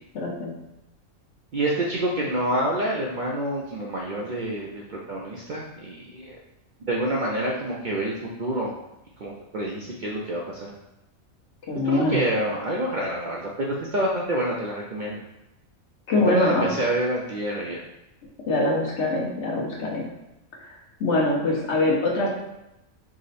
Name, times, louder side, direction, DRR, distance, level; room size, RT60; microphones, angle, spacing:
voice 1, 0.1-0.5 11.7-12.2 16.1-16.7 18.5-20.0 21.0-22.3, left 2 dB, 60° left, -2 dB, 1.1 m, -23 dB
voice 2, 1.5-6.3 6.8-8.7 9.2-10.7 11.8-15.2 16.2-17.8, right 1 dB, 65° right, -3 dB, 0.4 m, -27 dB
4.9 x 2.1 x 4.0 m, 0.91 s
omnidirectional pair, 1.4 m